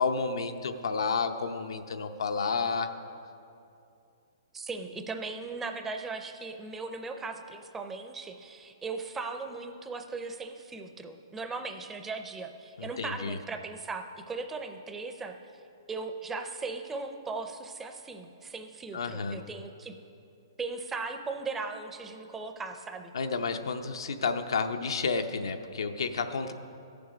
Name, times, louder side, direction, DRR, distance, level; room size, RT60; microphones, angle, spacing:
voice 1, 0.0-2.9 12.8-13.4 18.9-19.4 23.1-26.5, left 4 dB, 85° left, 7 dB, 0.7 m, -31 dB
voice 2, 4.5-15.3 15.9-19.9 20.6-23.1, right 4 dB, 10° right, 6 dB, 0.5 m, -38 dB
15.0 x 7.0 x 5.1 m, 2.6 s
hypercardioid pair, 160°, 2 cm